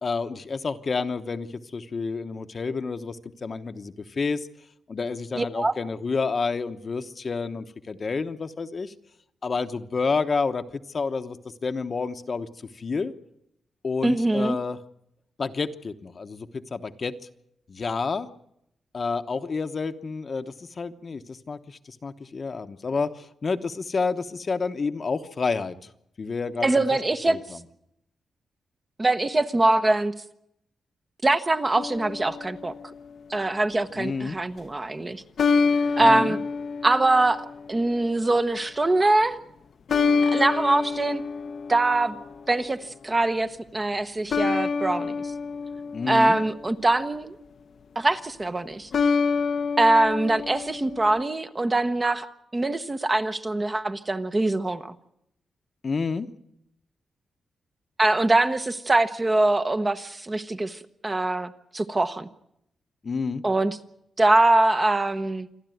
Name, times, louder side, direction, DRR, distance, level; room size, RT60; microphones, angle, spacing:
voice 1, 0.0-4.5 4.9-8.9 9.4-10.6 10.9-11.4 11.6-12.5 12.8-13.1 13.8-14.8 15.4-17.1 17.7-18.3 18.9-25.7 26.2-26.7 27.3-27.4 34.0-34.4 36.0-36.4 45.9-46.4 55.8-56.3 63.0-63.4, left 4 dB, 40° left, 9 dB, 1.0 m, -29 dB
voice 2, 5.4-5.7 14.0-14.6 26.6-27.4 29.0-30.1 31.2-32.7 33.3-35.2 36.0-36.4 36.8-39.4 40.2-41.2 41.7-42.2 42.5-42.8 43.0-45.3 46.1-47.4 48.0-48.9 49.8-54.9 58.0-62.3 63.4-63.8 64.2-65.5, right 2 dB, 20° right, 9 dB, 1.0 m, -23 dB
sound 1, 31.7-33.1 35.4-37.9 39.9-42.5 44.3-46.8 48.9-51.2, left 5 dB, 55° left, 0.8 m, -27 dB
27.5 x 11.5 x 9.2 m, 0.77 s
wide cardioid pair, 135°, 0 cm